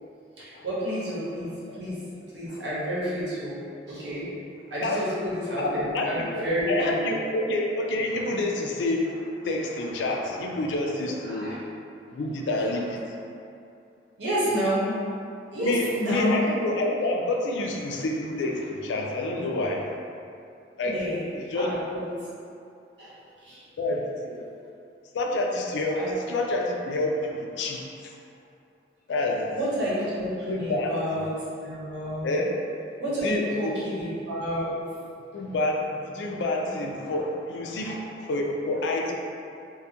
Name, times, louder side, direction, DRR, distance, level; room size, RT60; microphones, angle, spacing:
voice 1, 0.4-2.0 2.3-3.6 3.9-4.3 4.7-7.2 11.2-11.5 14.2-14.9 15.5-16.4 20.8-21.3 21.5-22.1 23.0-23.1 23.4-23.6 25.9-26.1 29.5-31.3 31.6-32.4 33.0-34.7 36.6-36.8 37.9-38.0, equal, 80° right, -8 dB, 0.8 m, -29 dB
voice 2, 5.6-11.6 12.1-13.0 15.6-20.0 20.8-21.1 21.3-21.7 23.8-24.4 25.1-28.1 29.1-29.6 30.5-30.9 32.2-32.5 33.2-33.8 35.3-39.2, left 2 dB, 85° left, 0 dB, 0.3 m, -28 dB
2.5 x 2.3 x 2.7 m, 2.5 s
head